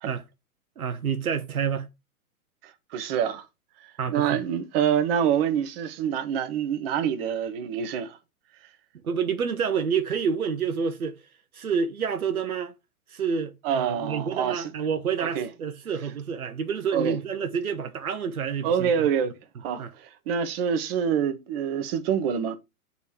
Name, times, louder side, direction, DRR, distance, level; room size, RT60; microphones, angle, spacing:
voice 1, 0.8-1.9 4.0-4.4 9.0-11.2 11.5-12.7 13.1-18.9 19.8-19.9, right 6 dB, 75° right, 1.1 m, -28 dB
voice 2, 2.9-3.4 3.8-8.2 13.6-14.7 15.2-15.5 16.9-17.2 18.6-19.3 19.6-22.6, right 8 dB, 40° right, 1.2 m, -26 dB
8.1 x 4.3 x 4.4 m
figure-of-eight pair, 110°, 43 cm